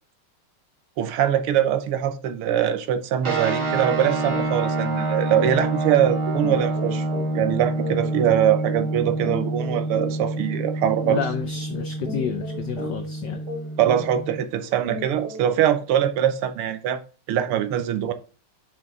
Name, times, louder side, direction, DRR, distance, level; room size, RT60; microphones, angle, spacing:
voice 1, 1.0-7.0 7.3-11.2 13.8-17.0 17.3-18.1, right 10 dB, 85° right, 1.7 m, -22 dB
sound 1, 3.2-14.4, right 2 dB, 65° right, 2.7 m, -27 dB
sound 2, 4.3-4.5 4.8-5.0 5.3-15.6, equal, 50° right, 3.5 m, -37 dB
voice 2, 11.1-13.4, left 8 dB, 70° left, 1.0 m, -30 dB
6.4 x 5.2 x 3.6 m
omnidirectional pair, 2.4 m